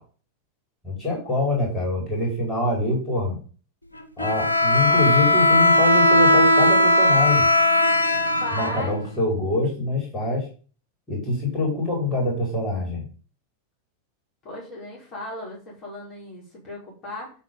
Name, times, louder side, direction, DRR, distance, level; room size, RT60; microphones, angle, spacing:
voice 1, 0.8-3.4 4.2-7.5 8.5-10.5 11.1-13.0, left 2 dB, 15° left, -3 dB, 5.3 m, -25 dB
Bowed string instrument, 4.2-9.2, left 1 dB, 80° left, 1.0 m, -18 dB
voice 2, 8.4-9.0 14.4-17.3, left 2 dB, 30° left, -4 dB, 5.1 m, -36 dB
11.5 x 4.6 x 5.7 m, 0.39 s
figure-of-eight pair, 90°, 0 cm